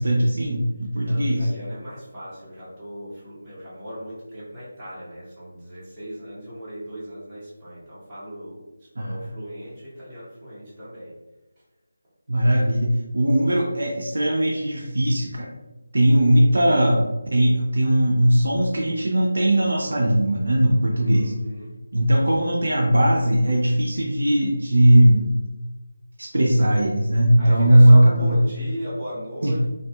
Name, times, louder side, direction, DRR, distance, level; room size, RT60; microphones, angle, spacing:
voice 1, 0.0-1.5 9.0-9.3 12.3-15.5 15.9-21.3 21.9-25.3 26.2-28.3 29.4-29.7, right 1 dB, 60° right, -1 dB, 0.4 m, -19 dB
voice 2, 1.0-8.7 9.0-11.2 20.9-21.7 27.4-29.7, equal, 15° right, -12 dB, 0.9 m, -37 dB
2.6 x 2.5 x 2.2 m, 1.0 s
figure-of-eight pair, 155°, 0 cm